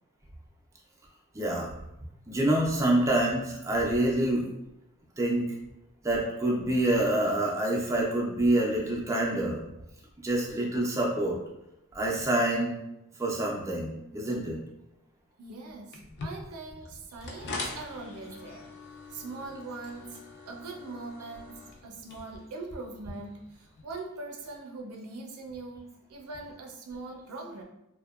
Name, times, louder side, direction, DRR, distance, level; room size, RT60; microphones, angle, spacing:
voice 1, 1.3-1.7 2.3-4.4 5.2-5.4 6.0-9.6 10.2-11.4 11.9-12.8 13.2-14.6, right 1 dB, 15° right, -3 dB, 0.4 m, -26 dB
voice 2, 15.4-18.7 19.1-20.2 20.5-27.6, right 3 dB, 75° right, 1 dB, 0.4 m, -42 dB
sound 1, 15.9-23.8, left 3 dB, 50° left, 0.4 m, -43 dB
2.7 x 2.1 x 2.2 m, 0.86 s
head